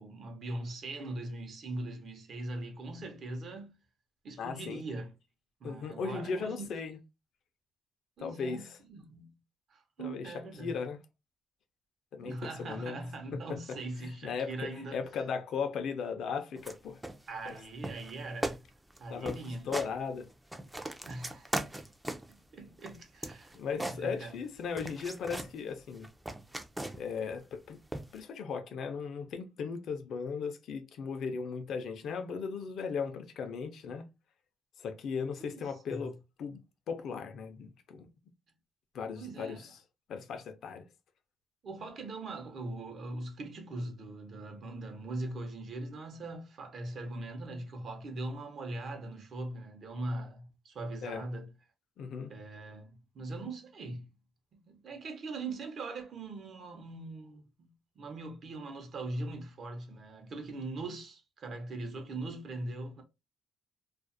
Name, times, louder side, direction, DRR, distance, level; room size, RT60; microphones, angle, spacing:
voice 1, 0.0-3.7 4.2-5.1 5.6-6.7 8.2-9.4 9.7-10.7 12.2-15.0 17.3-18.6 19.0-19.7 21.1-21.9 22.3-24.4 35.4-36.1 39.1-39.7 41.6-51.5 52.3-54.1 54.5-63.0, right 2 dB, 55° right, 0.7 m, -41 dB
voice 2, 4.4-4.8 5.6-7.0 8.2-8.7 10.0-10.3 10.6-11.0 12.1-13.0 13.5-13.6 14.0-17.0 17.5-17.6 19.1-19.4 19.7-20.3 23.5-26.1 27.0-27.8 28.1-34.0 34.8-36.6 36.9-38.1 38.9-39.7 40.1-40.8 51.0-51.2 52.0-52.3, left 5 dB, 70° left, 0.5 m, -37 dB
sound 1, 16.6-16.8 17.0-17.6 17.8-18.1 18.4-18.6 18.9-19.0 19.2-19.9 20.3-22.4 22.8-24.5 24.8-25.5 25.9-27.2 27.9-28.2, right 1 dB, 10° right, 0.3 m, -38 dB
2.4 x 2.0 x 2.5 m
cardioid pair, 90°, 0 cm